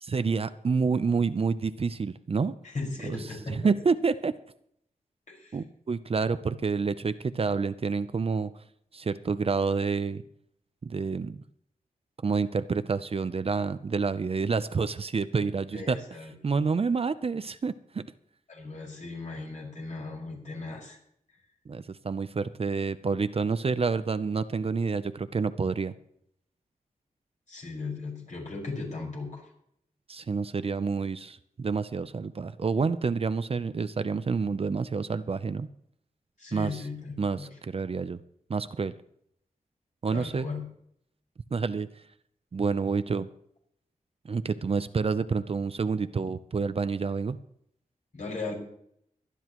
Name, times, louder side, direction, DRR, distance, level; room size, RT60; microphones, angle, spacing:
voice 1, 0.0-2.5 3.0-3.2 3.5-4.3 5.5-8.5 8.9-10.2 10.8-11.4 12.2-16.0 16.4-18.0 21.7-25.9 30.1-35.7 36.5-36.8 37.2-38.2 38.5-38.9 40.0-40.5 41.5-41.9 42.5-43.3 44.3-47.4, right 5 dB, 45° right, 12 dB, 0.6 m, -28 dB
voice 2, 2.6-3.7 5.3-5.6 15.7-16.3 18.5-21.0 27.5-29.4 36.4-37.5 40.1-40.7 48.1-48.5, left 3 dB, 60° left, -2 dB, 5.4 m, -37 dB
23.0 x 10.0 x 3.0 m, 0.71 s
wide cardioid pair, 120°, 14 cm